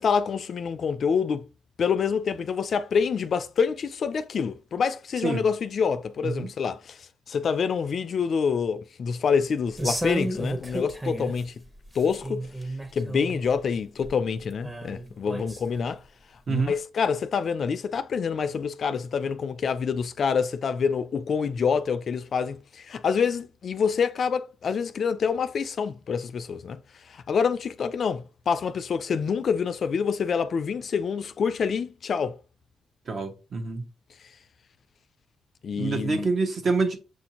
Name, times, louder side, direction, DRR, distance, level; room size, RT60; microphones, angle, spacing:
voice 1, 0.0-1.4 1.8-11.5 11.9-12.4 12.9-16.0 16.5-26.8 27.0-32.4 35.6-36.3, left 6 dB, 50° left, 0.3 m, -27 dB
sound 1, 9.8-11.4 11.8-13.5 14.0-14.1 14.6-15.9 16.6-16.7, right 1 dB, 15° right, 0.9 m, -32 dB
voice 2, 33.1-33.8 35.8-37.0, right 4 dB, 45° right, 0.8 m, -26 dB
6.2 x 2.6 x 2.8 m
cardioid pair, 90°, 0 cm